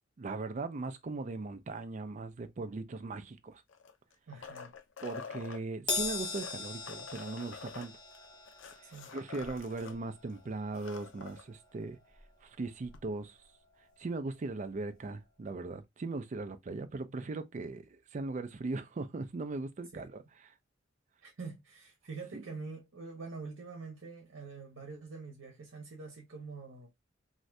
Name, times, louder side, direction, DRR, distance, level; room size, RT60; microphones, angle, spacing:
voice 1, 0.2-3.6 5.0-7.9 9.1-12.0 12.4-13.4 14.0-17.9 18.1-20.2 22.3-22.4, right 3 dB, 40° right, 0.4 m, -39 dB
sound 1, 3.7-5.6 6.2-10.0 10.3-10.4 10.6-11.4 12.9-13.0, left 5 dB, 75° left, 0.6 m, -47 dB
voice 2, 4.3-4.7 8.8-9.1 16.7-16.8 19.9-20.2 21.2-26.9, right 4 dB, 80° right, 0.8 m, -45 dB
Crash cymbal, 5.9-12.5 12.8-13.1 14.1-14.2, left 3 dB, 25° left, 0.8 m, -41 dB
2.6 x 2.5 x 3.1 m
head